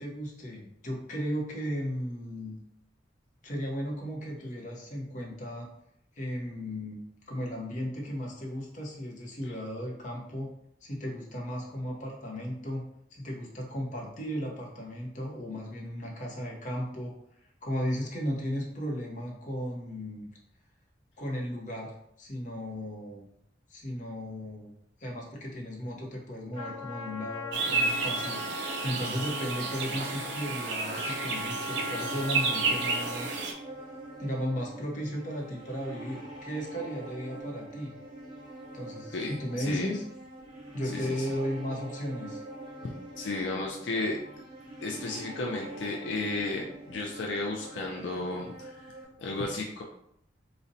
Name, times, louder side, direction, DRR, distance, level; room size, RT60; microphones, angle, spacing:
voice 1, 0.0-2.5 3.4-5.7 6.1-7.0 7.3-10.5 10.8-12.9 13.1-17.1 17.6-20.3 21.2-23.3 23.7-24.7 25.0-33.4 34.2-37.9 38.7-40.0 40.7-42.4, equal, 40° left, -2 dB, 0.7 m, -35 dB
Trumpet, 26.5-33.5, left 1 dB, 45° right, 1.2 m, -39 dB
sound 1, 27.5-33.5, right 4 dB, 65° right, 0.4 m, -31 dB
sound 2, 31.4-49.1, right 1 dB, 25° right, 1.0 m, -44 dB
voice 2, 39.1-39.9 40.9-41.3 42.8-44.2 44.8-48.9 49.2-49.8, left 2 dB, 75° left, 0 dB, 0.4 m, -34 dB
3.9 x 2.1 x 2.6 m, 0.75 s
head